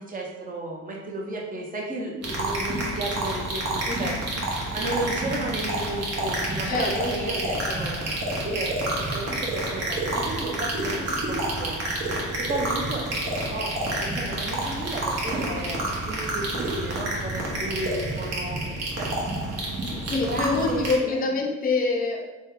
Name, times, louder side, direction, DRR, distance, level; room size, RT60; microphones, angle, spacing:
voice 1, 0.0-4.2 4.7-7.9 8.3-11.9 12.5-13.0 13.5-18.6 19.0-19.1 19.9-21.2, right 1 dB, 30° right, -1 dB, 0.7 m, -33 dB
sound 1, 2.2-20.9, right 1 dB, 55° right, 1.0 m, -29 dB
voice 2, 6.6-7.7 20.1-22.2, left 3 dB, 30° left, 1 dB, 0.5 m, -26 dB
3.0 x 2.2 x 3.6 m, 1.1 s
cardioid pair, 90°, 30 cm